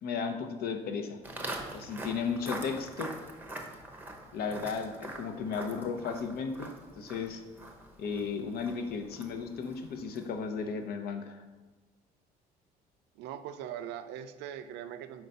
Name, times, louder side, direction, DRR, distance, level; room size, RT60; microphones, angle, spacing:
voice 1, 0.0-1.2 1.7-3.1 4.3-7.4 8.0-11.4, left 5 dB, 65° left, 6 dB, 0.7 m, -35 dB
Walk footsteps, 1.2-10.5, right 1 dB, 10° right, 0.7 m, -44 dB
voice 2, 13.2-15.3, right 10 dB, 90° right, 10 dB, 0.4 m, -41 dB
4.5 x 3.9 x 5.3 m, 1.2 s
cardioid pair, 110°, 17 cm